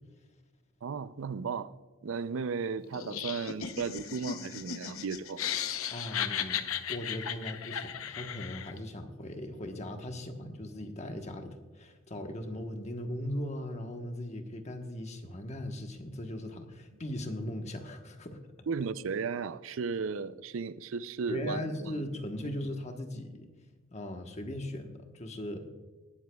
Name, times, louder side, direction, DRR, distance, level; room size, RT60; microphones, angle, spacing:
voice 1, 0.8-1.7 2.0-5.4 18.7-22.0 22.4-22.5, right 5 dB, 70° right, 15 dB, 0.5 m, -35 dB
Laughter, 2.9-8.8, left 9 dB, 85° left, 0.7 m, -36 dB
voice 2, 5.9-18.4 21.3-23.5 23.9-25.7, left 1 dB, 35° left, 5 dB, 1.2 m, -38 dB
18.5 x 13.0 x 2.3 m, 1.3 s
head